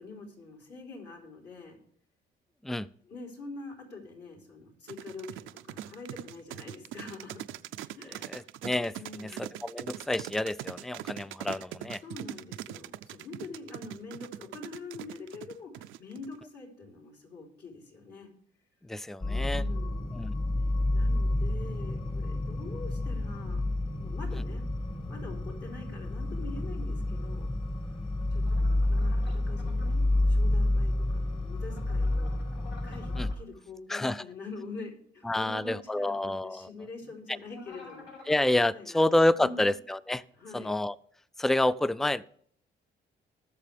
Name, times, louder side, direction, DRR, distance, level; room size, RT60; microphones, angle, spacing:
voice 1, 0.0-1.8 3.0-7.6 7.9-8.3 9.0-9.5 12.0-18.3 19.3-20.1 20.9-23.7 24.0-24.7 25.1-27.5 28.3-32.4 32.8-38.1 38.7-39.0 39.4-39.7 40.3-40.7, left 3 dB, 60° left, -1 dB, 3.8 m, -45 dB
sound 1, 4.9-16.3, right 13 dB, 80° right, 0.5 m, -41 dB
voice 2, 8.3-8.9 9.2-12.0 18.9-19.6 20.1-20.3 33.2-33.3 33.9-34.2 35.3-36.7 38.3-40.2 40.5-40.9 41.4-42.2, left 1 dB, ahead, 18 dB, 0.3 m, -28 dB
sound 2, 19.2-33.3, left 1 dB, 25° left, 1.5 m, -29 dB
sound 3, 28.4-29.9 31.6-33.4 37.5-38.6, left 4 dB, 80° left, 5.5 m, -51 dB
19.5 x 6.7 x 3.4 m, 0.62 s
cardioid pair, 90°, 20 cm